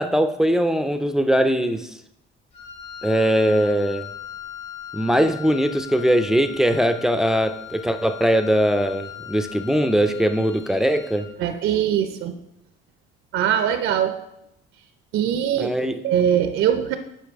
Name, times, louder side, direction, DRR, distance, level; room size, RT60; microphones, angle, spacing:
voice 1, 0.0-1.9 3.0-4.1 4.9-11.3 15.6-16.0, equal, ahead, 8 dB, 0.4 m, -21 dB
Wind instrument woodwind instrument, 2.5-11.4, left 10 dB, 30° left, 1.0 m, -39 dB
voice 2, 11.4-12.3 13.3-14.1 15.1-15.7 16.0-17.0, right 9 dB, 75° right, 8 dB, 0.6 m, -21 dB
9.8 x 4.7 x 3.5 m, 0.82 s
cardioid pair, 110°, 21 cm